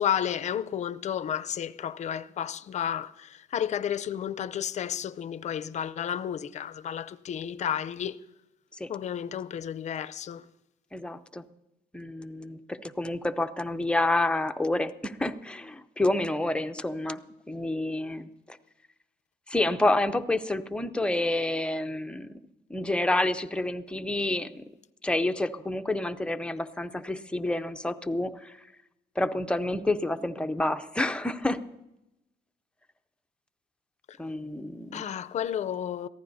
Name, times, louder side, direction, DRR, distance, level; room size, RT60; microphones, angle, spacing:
voice 1, 0.0-8.2 8.9-10.4 34.1-34.2 34.9-36.1, left 9 dB, 45° left, 0.6 m, -32 dB
voice 2, 10.9-11.4 11.9-17.2 17.5-18.6 19.5-22.3 22.7-24.6 25.0-28.6 29.2-31.6 34.2-35.0, left 2 dB, 5° left, 0.6 m, -29 dB
22.0 x 15.0 x 2.7 m
cardioid pair, 110°, 17 cm